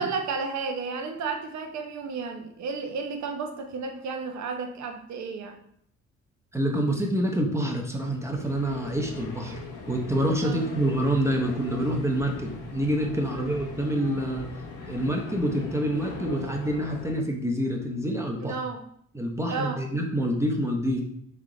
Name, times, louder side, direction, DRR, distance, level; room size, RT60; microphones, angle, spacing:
voice 1, 0.0-5.6 10.4-10.6 13.3-13.5 18.4-18.8 19.5-19.8, right 4 dB, 65° right, 4 dB, 0.8 m, -32 dB
voice 2, 6.5-14.5 14.9-18.6 19.1-21.0, right 1 dB, 10° right, 0 dB, 0.8 m, -27 dB
sound 1, 7.9-17.1, left 4 dB, 85° left, 1.0 m, -40 dB
3.5 x 3.5 x 3.8 m, 0.67 s
cardioid pair, 90°, 30 cm